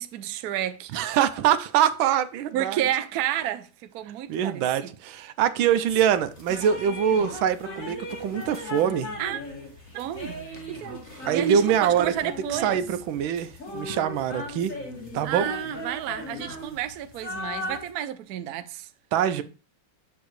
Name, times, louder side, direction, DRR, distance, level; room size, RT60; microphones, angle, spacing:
voice 1, 0.0-0.9 2.5-3.7 3.9-4.9 5.7-5.8 9.2-9.4 9.9-10.4 10.7-12.8 15.2-18.9 19.4-19.5, right 11 dB, 65° right, 1.0 m, -31 dB
voice 2, 0.9-2.8 4.3-9.1 11.3-14.7 15.1-15.5 19.1-19.4, right 9 dB, 90° right, 1.5 m, -24 dB
sound 1, 5.9-17.9, left 2 dB, 40° left, 2.6 m, -38 dB
8.4 x 6.9 x 3.1 m
omnidirectional pair, 2.1 m